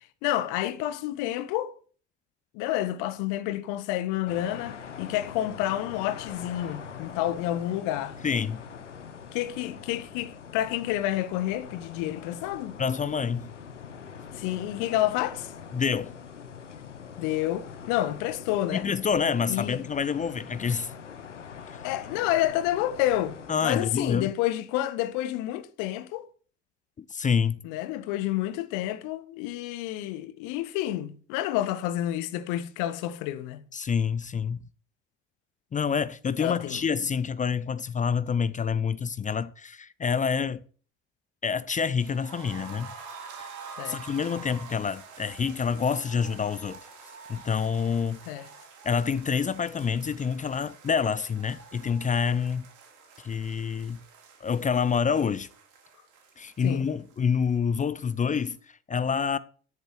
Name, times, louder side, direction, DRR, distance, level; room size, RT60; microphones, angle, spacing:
voice 1, 0.2-1.7 2.5-8.2 9.3-12.8 14.4-15.5 17.2-18.9 19.5-19.8 21.8-23.4 23.6-26.2 27.6-33.6 36.4-36.8 43.8-44.0 48.3-48.5 56.6-56.8, left 13 dB, 60° left, 1.3 m, -29 dB
sound 1, 4.3-23.5, left 6 dB, 85° left, 1.0 m, -43 dB
voice 2, 8.2-8.6 12.8-13.5 15.7-16.1 18.7-20.9 23.5-24.3 27.1-27.6 33.7-34.6 35.7-40.6 41.4-42.9 43.4-43.5 43.9-46.8 47.3-48.2 48.8-52.7 53.2-54.0 54.4-55.5 56.4-59.4, left 6 dB, 20° left, 0.6 m, -27 dB
sound 2, 42.0-57.8 58.1-58.2 58.5-58.6, right 5 dB, 55° right, 4.1 m, -47 dB
13.0 x 10.5 x 3.3 m
figure-of-eight pair, 60°, 36 cm